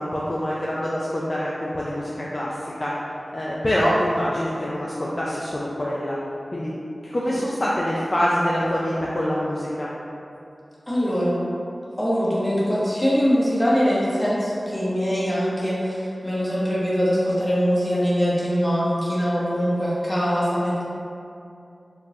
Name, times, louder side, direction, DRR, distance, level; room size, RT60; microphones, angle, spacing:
voice 1, 0.0-2.9 3.3-6.2 6.5-6.7 7.0-9.9, equal, 40° left, -6 dB, 0.4 m, -25 dB
voice 2, 10.9-11.5 12.0-20.8, equal, 25° left, -8 dB, 0.9 m, -22 dB
3.7 x 2.4 x 2.7 m, 2.6 s
wide cardioid pair, 55°, 0 cm